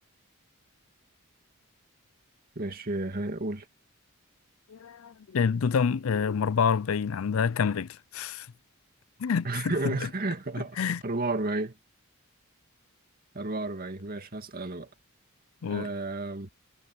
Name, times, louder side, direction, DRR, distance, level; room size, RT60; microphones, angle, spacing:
voice 1, 2.6-3.7 9.4-11.7 13.3-14.9 15.6-16.5, right 2 dB, 45° right, 2.2 m, -32 dB
voice 2, 4.7-8.5 9.2-9.5 9.8-10.0 10.8-11.0 15.6-15.9, left 6 dB, 70° left, 0.4 m, -27 dB
head